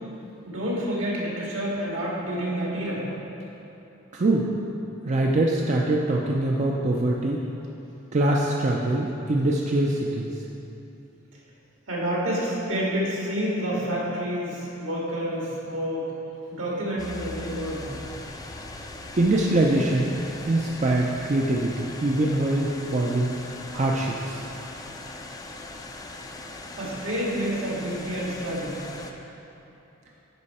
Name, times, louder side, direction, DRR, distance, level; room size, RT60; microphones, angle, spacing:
voice 1, 0.4-3.0 11.9-16.1 16.5-18.0 26.8-28.8, equal, 75° right, -5 dB, 2.0 m, -28 dB
voice 2, 4.1-4.5 5.0-7.4 8.1-10.3 19.1-20.1 20.5-23.3 23.7-24.4, right 2 dB, 35° right, -2 dB, 0.5 m, -23 dB
sound 1, 17.0-29.1, left 2 dB, 20° left, 0.4 m, -40 dB
9.7 x 5.5 x 4.2 m, 3.0 s
head